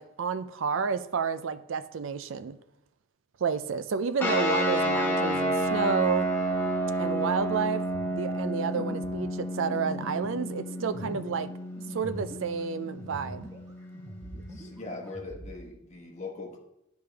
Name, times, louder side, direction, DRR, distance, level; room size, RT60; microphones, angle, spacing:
voice 1, 0.0-2.6 3.4-6.3 7.0-7.8 8.2-11.5 11.9-13.5, right 6 dB, 60° right, 0.4 m, -30 dB
sound 1, 4.2-15.1, right 1 dB, 10° left, 1.5 m, -31 dB
sound 2, 7.9-13.7 13.9-15.6, right 1 dB, 15° right, 1.0 m, -44 dB
voice 2, 14.3-16.6, left 3 dB, 30° left, 1.2 m, -41 dB
10.5 x 5.2 x 3.4 m
head